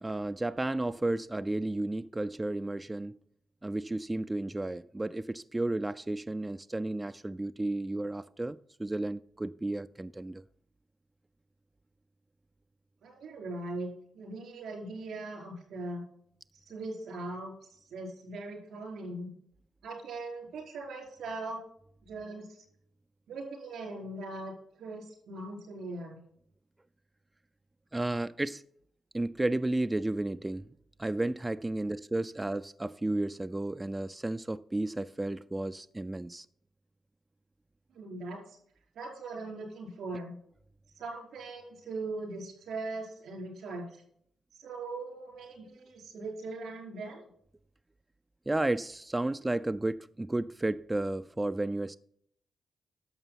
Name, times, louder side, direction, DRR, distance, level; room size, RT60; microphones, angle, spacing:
voice 1, 0.0-3.2 3.6-10.4 27.9-28.6 29.1-30.7 31.0-36.5 48.5-52.0, right 2 dB, 15° right, 0.4 m, -32 dB
voice 2, 13.0-16.0 16.5-19.3 19.8-21.6 22.1-22.6 23.3-26.2 37.9-38.6 38.9-40.4 41.0-44.0 44.5-47.2, right 2 dB, 85° right, 4.7 m, -40 dB
11.0 x 7.0 x 5.8 m
cardioid pair, 75°, 0 cm